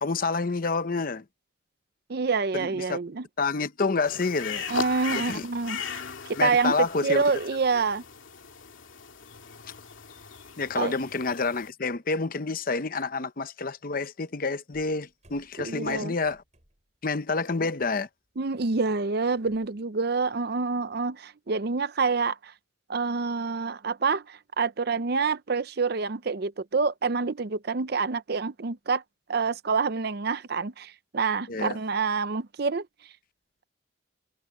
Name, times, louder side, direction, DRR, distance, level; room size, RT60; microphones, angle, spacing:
voice 1, 0.0-1.2 2.5-3.0 3.4-4.7 5.1-5.5 6.3-7.2 10.6-16.4 17.0-18.1 31.5-31.8, left 4 dB, 45° left, 0.8 m, -28 dB
voice 2, 2.1-3.3 4.7-6.8 7.0-8.0 10.7-10.9 15.6-16.1 18.4-22.5 22.9-29.0 29.3-32.9, right 4 dB, 50° right, 0.6 m, -27 dB
sound 1, 4.1-11.7, left 6 dB, 75° left, 2.4 m, -38 dB
sound 2, 14.7-17.0 17.3-17.6 18.0-19.7, equal, 35° right, 6.0 m, -61 dB
head